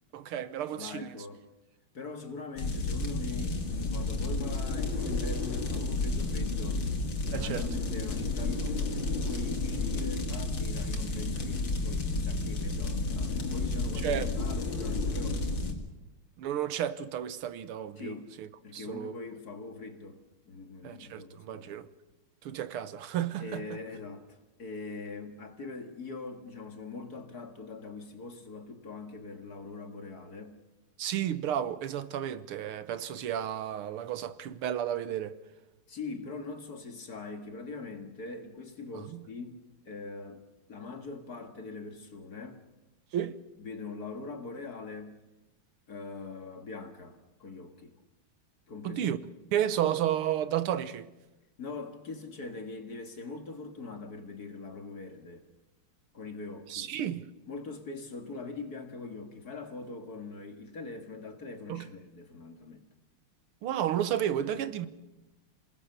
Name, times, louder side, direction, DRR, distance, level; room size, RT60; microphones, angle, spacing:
voice 1, 0.1-1.1 7.3-7.7 14.0-14.3 16.4-19.1 20.8-21.9 22.4-23.8 31.0-35.4 39.1-39.2 43.1-43.4 48.8-49.2 49.5-51.1 56.7-57.3 61.7-61.9 63.6-64.9, right 10 dB, 85° right, 1.9 m, -32 dB
voice 2, 0.7-1.4 1.9-6.9 7.3-15.4 18.0-18.3 18.6-21.8 23.4-30.6 35.9-39.6 39.8-40.4 40.7-42.6 43.6-45.2 45.9-47.9 48.7-49.1 51.6-55.4 56.1-56.9 57.5-62.8 64.5-64.7, left 3 dB, 45° left, 2.4 m, -42 dB
sound 1, 2.6-15.7, left 3 dB, 60° left, 3.3 m, -31 dB
27.5 x 19.0 x 6.8 m
omnidirectional pair, 2.4 m